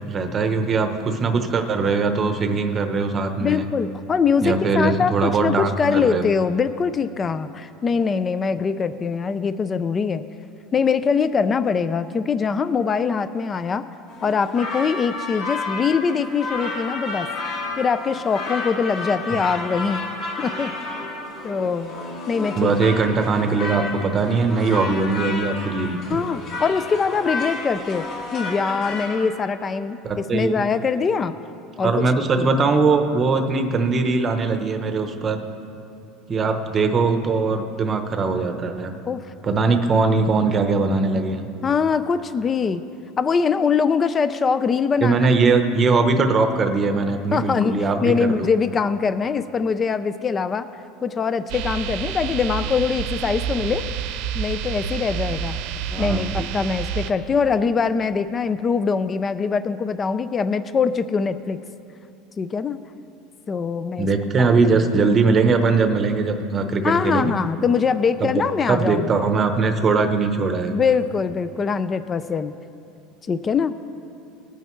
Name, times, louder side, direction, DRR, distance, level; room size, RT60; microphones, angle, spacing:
voice 1, 0.1-3.7 4.4-6.2 19.3-19.4 22.6-26.0 30.0-30.6 31.8-35.4 36.3-38.9 39.4-41.4 45.0-48.5 55.9-56.5 64.0-67.3 68.2-68.3 68.7-70.8, right 4 dB, 25° right, 6 dB, 0.8 m, -21 dB
voice 2, 3.4-10.2 10.7-13.9 14.2-17.3 17.8-20.0 20.4-20.9 21.4-21.9 22.3-22.7 26.0-28.1 28.3-31.4 31.8-31.9 32.4-32.5 39.1-39.2 41.6-42.8 43.2-45.3 47.3-50.7 51.0-53.9 54.3-55.6 56.0-61.6 62.4-62.8 63.5-64.1 64.4-64.8 66.8-69.2 70.7-72.5 73.3-73.7, left 5 dB, 20° left, 13 dB, 0.3 m, -23 dB
sound 1, 14.1-29.3, left 2 dB, 50° left, 2.0 m, -31 dB
sound 2, 51.5-57.1, right 8 dB, 60° right, 0.8 m, -28 dB
20.0 x 9.1 x 3.1 m, 2.6 s
cardioid pair, 160°, 0 cm